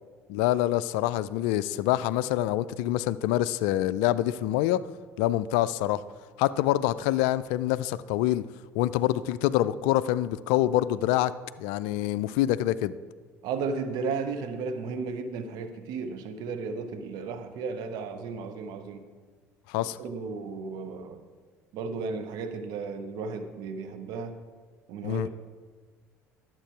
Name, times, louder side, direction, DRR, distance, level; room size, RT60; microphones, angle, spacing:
voice 1, 0.3-4.8 5.2-6.0 6.4-8.5 8.7-11.3 11.6-13.0 19.7-20.0 25.0-25.3, left 14 dB, 60° left, 17 dB, 0.3 m, -26 dB
voice 2, 13.4-19.0 19.8-21.2 21.7-24.4 24.9-25.3, right 4 dB, 55° right, 8 dB, 0.8 m, -34 dB
11.5 x 7.4 x 4.6 m, 1.5 s
figure-of-eight pair, 60°, 8 cm